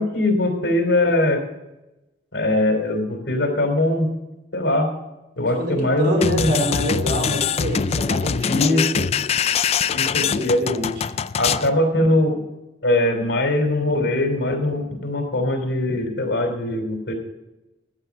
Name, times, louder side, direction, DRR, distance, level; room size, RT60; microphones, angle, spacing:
voice 1, 0.0-1.4 2.3-4.1 4.5-4.9 5.4-6.5 8.3-9.1 9.9-10.6 11.3-12.4 12.8-17.1, left 1 dB, 80° left, 4 dB, 3.2 m, -21 dB
voice 2, 5.5-8.9 10.2-10.9, equal, 60° right, 2 dB, 3.7 m, -26 dB
sound 1, 6.2-11.7, left 7 dB, 35° left, 0.3 m, -23 dB
13.5 x 8.7 x 4.8 m, 0.95 s
head